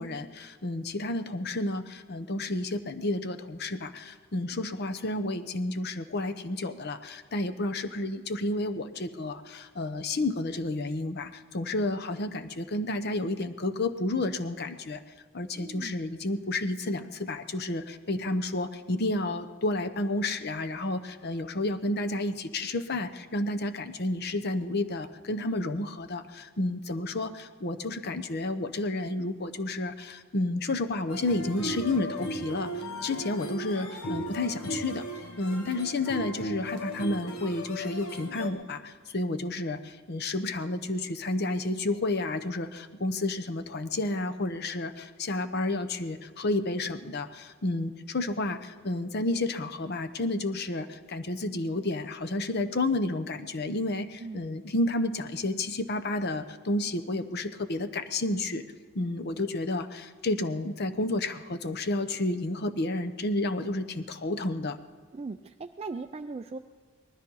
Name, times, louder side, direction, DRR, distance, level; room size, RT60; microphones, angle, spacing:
voice 1, 0.0-15.0 15.3-32.7 33.0-35.1 35.4-58.6 58.9-64.8, left 2 dB, 50° left, 9 dB, 0.8 m, -31 dB
voice 2, 15.6-16.0 54.2-54.5 65.1-66.6, right 3 dB, 30° right, 7 dB, 0.4 m, -38 dB
sound 1, 31.1-38.5, equal, 85° left, 1.8 m, -36 dB
19.5 x 13.0 x 5.5 m, 1.5 s
head